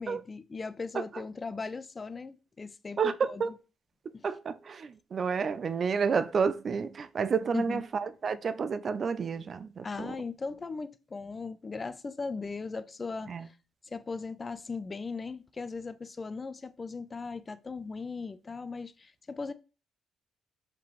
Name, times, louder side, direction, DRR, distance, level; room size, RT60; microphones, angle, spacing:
voice 1, 0.0-3.6 4.1-4.3 7.5-7.8 9.8-13.6 13.8-19.5, left 4 dB, 30° left, 0.4 m, -38 dB
voice 2, 3.0-3.5 4.2-10.1 13.3-13.5, right 6 dB, 45° right, 0.4 m, -30 dB
4.8 x 3.7 x 3.0 m
cardioid pair, 90°, 0 cm